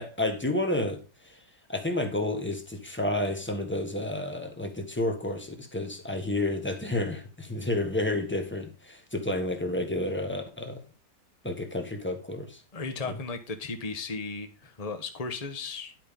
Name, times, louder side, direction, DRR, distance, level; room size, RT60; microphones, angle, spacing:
voice 1, 0.0-1.4 1.7-10.8 11.4-12.6 13.0-13.1, left 1 dB, 5° left, 5 dB, 1.5 m, -30 dB
voice 2, 12.7-15.9, left 4 dB, 25° left, 7 dB, 1.2 m, -35 dB
11.0 x 5.6 x 5.3 m, 0.32 s
omnidirectional pair, 1.9 m